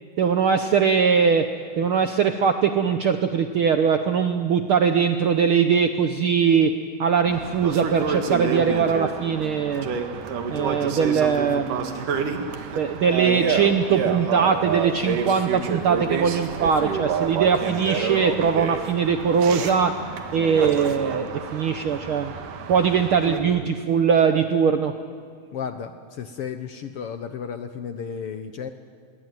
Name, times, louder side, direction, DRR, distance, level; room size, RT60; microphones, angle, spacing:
voice 1, 0.2-1.5 1.8-6.7 7.0-9.9 10.5-12.5 12.8-19.9 20.3-22.3 22.7-24.9, right 6 dB, 70° right, 7 dB, 1.3 m, -21 dB
sound 1, 7.3-23.4, right 5 dB, 90° right, 3.3 m, -29 dB
voice 2, 25.5-28.7, left 7 dB, 65° left, 9 dB, 1.5 m, -33 dB
26.5 x 22.5 x 9.3 m, 2.1 s
omnidirectional pair, 3.6 m